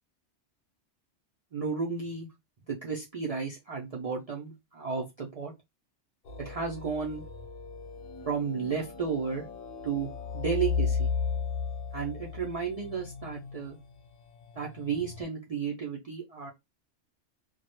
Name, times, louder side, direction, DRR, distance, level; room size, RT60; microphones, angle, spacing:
voice 1, 1.5-2.3 2.7-5.5 6.4-7.2 8.3-9.4 9.8-11.1 11.9-13.8 14.6-16.5, right 6 dB, 75° right, -3 dB, 0.3 m, -33 dB
sound 1, 6.2-15.2, left 6 dB, 65° left, 0.8 m, -35 dB
2.2 x 2.0 x 2.9 m, 0.21 s
omnidirectional pair, 1.2 m